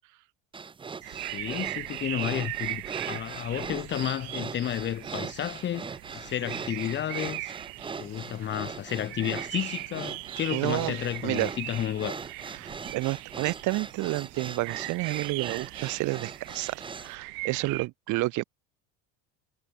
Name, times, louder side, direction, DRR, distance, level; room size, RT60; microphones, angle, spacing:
sound 1, 0.5-17.1, right 5 dB, 15° right, 1.2 m, -40 dB
sound 2, 1.0-17.9, right 35 dB, 85° right, 7.6 m, -40 dB
voice 1, 1.1-7.5 8.0-12.2, left 11 dB, 30° left, 1.7 m, -32 dB
voice 2, 10.5-11.0 11.2-11.5 12.6-18.4, right 20 dB, 60° right, 4.5 m, -30 dB
cardioid pair, 175°, 35 cm